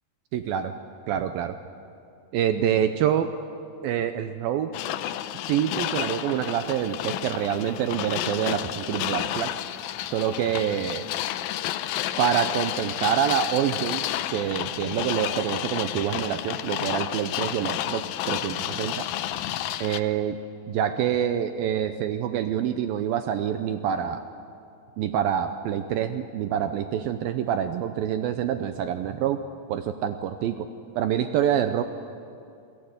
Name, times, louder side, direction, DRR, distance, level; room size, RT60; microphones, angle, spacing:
voice 1, 0.3-0.7 1.1-1.6 2.3-3.3 3.8-4.7 5.4-9.5 10.1-11.0 12.2-14.1 14.3-19.1 19.8-20.4 20.7-24.2 25.0-29.4 29.7-30.7 31.0-31.8, right 9 dB, 85° right, 9 dB, 2.1 m, -26 dB
sound 1, 4.7-20.0, left 13 dB, 90° left, 2.0 m, -31 dB
28.0 x 19.0 x 8.2 m, 2.5 s
omnidirectional pair, 5.0 m